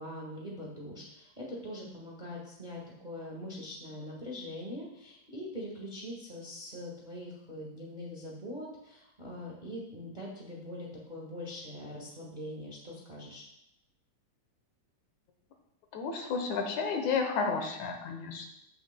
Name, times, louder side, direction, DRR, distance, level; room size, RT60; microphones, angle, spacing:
voice 1, 0.0-13.4, left 1 dB, 25° right, -3 dB, 1.0 m, -42 dB
voice 2, 15.9-18.5, left 5 dB, 80° left, 4 dB, 2.3 m, -32 dB
15.0 x 6.4 x 2.2 m, 0.82 s
omnidirectional pair, 3.4 m